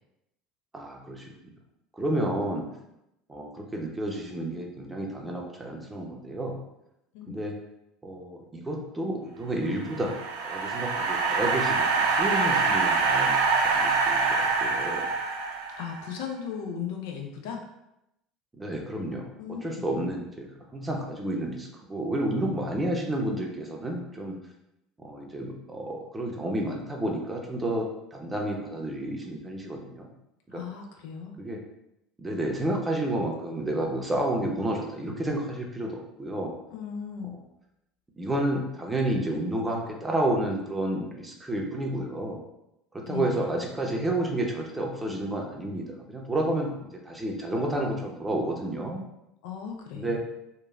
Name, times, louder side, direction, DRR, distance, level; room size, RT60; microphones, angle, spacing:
voice 1, 0.7-1.3 2.0-2.7 3.3-6.5 7.3-7.5 8.0-10.2 10.4-15.1 18.6-19.2 19.6-20.5 20.7-24.4 25.0-30.1 30.5-30.6 31.4-31.6 32.2-36.5 38.2-42.4 42.9-49.0 49.9-50.2, right 1 dB, 15° right, 0 dB, 0.6 m, -30 dB
sound 1, 9.7-16.1, right 4 dB, 75° right, 0.4 m, -25 dB
voice 2, 15.8-17.6 19.4-19.9 30.5-31.4 36.7-37.4 43.0-43.5 49.4-50.2, left 7 dB, 70° left, 3 dB, 0.4 m, -36 dB
3.0 x 2.3 x 2.4 m, 0.86 s
hypercardioid pair, 70°, 0 cm